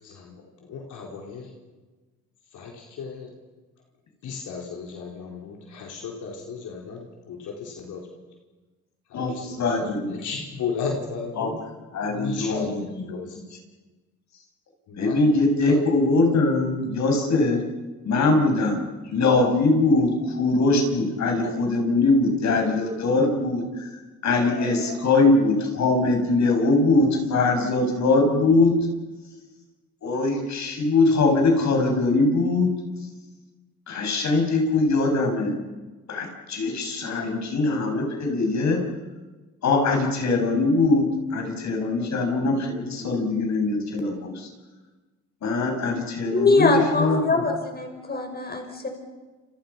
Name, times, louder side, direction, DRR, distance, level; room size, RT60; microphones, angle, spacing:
voice 1, 0.0-1.5 2.5-3.3 4.2-8.0 9.1-11.6 12.1-13.4 14.9-15.2 15.7-15.8, left 5 dB, 80° left, 0 dB, 4.4 m, -35 dB
voice 2, 9.1-10.2 11.4-11.5 11.9-13.4 15.0-17.6 18.0-18.8 19.1-23.9 24.2-28.7 30.0-32.7 33.9-35.5 36.1-38.8 39.6-41.0 41.3-44.5 45.4-47.4, left 3 dB, 65° left, 2 dB, 7.5 m, -22 dB
voice 3, 46.3-48.9, left 3 dB, 30° left, 4 dB, 6.1 m, -22 dB
29.5 x 28.0 x 5.9 m, 1.3 s
cardioid pair, 90°, 30 cm